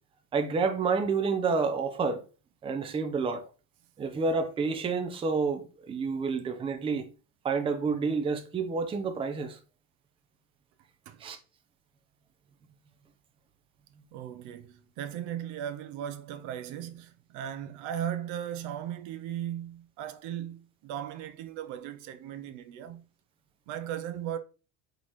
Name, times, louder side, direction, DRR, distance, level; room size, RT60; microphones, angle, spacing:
voice 1, 0.3-2.2 2.6-3.5 4.0-7.1 7.4-9.6 11.2-11.4, right 4 dB, 15° right, 0.5 m, -29 dB
voice 2, 14.1-23.0 23.7-24.4, right 10 dB, 65° right, 0.7 m, -37 dB
4.2 x 3.4 x 3.0 m
cardioid pair, 145°, 32 cm